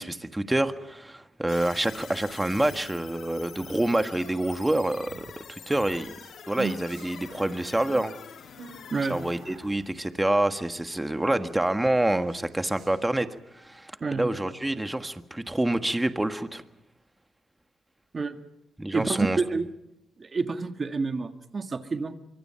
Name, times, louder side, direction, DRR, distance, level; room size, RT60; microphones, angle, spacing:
voice 1, 0.0-6.1 6.5-8.1 9.1-13.3 13.5-16.6 18.8-19.4, right 1 dB, 10° right, 9 dB, 1.5 m, -27 dB
sound 1, 1.5-10.7, left 7 dB, 70° left, 1.6 m, -46 dB
sound 2, 2.3-13.4, right 5 dB, 75° right, 7.7 m, -46 dB
voice 2, 8.9-9.2 14.0-14.3 18.1-18.4 18.9-19.7 20.2-22.2, right 4 dB, 40° right, 8 dB, 1.7 m, -28 dB
25.0 x 23.5 x 5.8 m, 0.89 s
cardioid pair, 90°, 0 cm